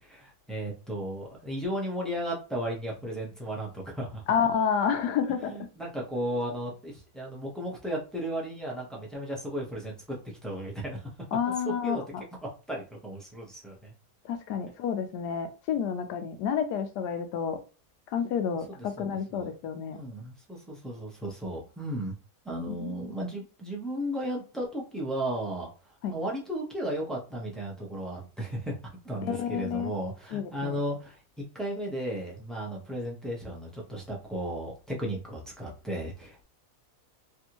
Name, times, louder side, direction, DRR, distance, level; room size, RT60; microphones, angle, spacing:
voice 1, 0.0-4.2 5.4-11.1 11.8-12.0 12.7-13.9 19.0-19.5 19.9-22.1 22.4-25.7 26.1-31.2 31.5-36.4, right 1 dB, ahead, -3 dB, 0.4 m, -35 dB
voice 2, 4.3-5.7 11.3-12.2 14.2-17.6 18.1-20.0 22.7-23.1 26.0-26.2 29.2-29.9 30.3-30.8, left 7 dB, 85° left, 8 dB, 1.2 m, -30 dB
3.4 x 2.5 x 2.9 m, 0.35 s
omnidirectional pair, 1.7 m